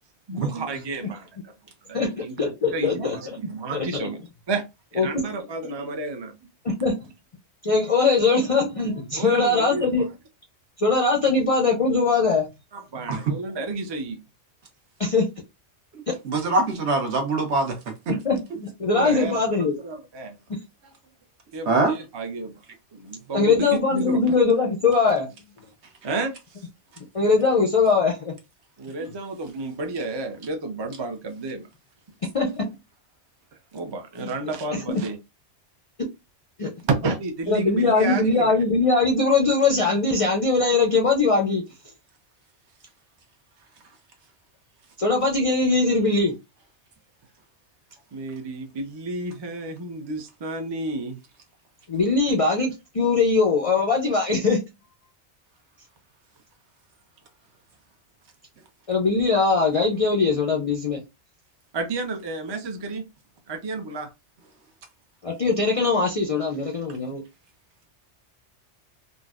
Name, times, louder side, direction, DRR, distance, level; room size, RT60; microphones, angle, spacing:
voice 1, 0.3-1.3 1.9-2.3 2.7-4.2 4.5-4.6 4.9-6.3 9.1-10.0 12.7-14.2 18.9-19.4 19.8-20.3 21.5-22.6 22.9-24.4 26.0-26.3 28.8-31.7 33.7-35.2 36.8-38.5 48.1-51.2 61.7-63.0 63.5-64.1, right 3 dB, 35° right, 0.4 m, -31 dB
voice 2, 1.9-3.2 3.7-4.0 5.0-5.3 6.6-7.1 7.6-10.0 10.8-12.5 15.0-15.3 18.1-19.8 20.5-20.6 23.3-25.3 27.1-28.3 32.3-32.7 34.2-34.3 34.7-35.0 36.6-36.7 37.5-41.6 45.0-46.4 51.9-54.6 58.9-61.0 65.2-67.2, left 3 dB, 50° left, 0.4 m, -21 dB
voice 3, 15.9-17.9 21.7-22.0, right 3 dB, 70° right, 1.1 m, -23 dB
3.8 x 2.1 x 2.3 m
omnidirectional pair, 1.2 m